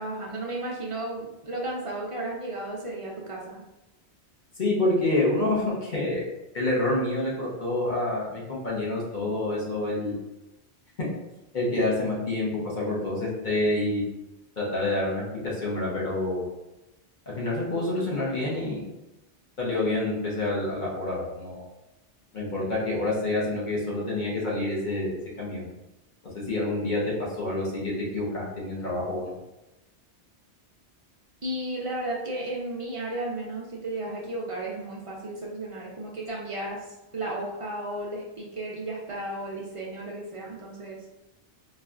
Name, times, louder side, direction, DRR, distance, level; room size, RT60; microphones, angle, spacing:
voice 1, 0.0-3.6 31.4-41.0, right 1 dB, 60° right, -3 dB, 0.3 m, -34 dB
voice 2, 4.6-6.2 6.5-10.1 11.0-11.1 11.5-14.0 14.6-15.2 15.6-16.5 17.3-18.9 19.6-21.6 22.3-25.7 26.3-29.3, left 2 dB, 45° left, -5 dB, 0.9 m, -27 dB
4.0 x 2.3 x 2.4 m, 0.96 s
omnidirectional pair, 1.2 m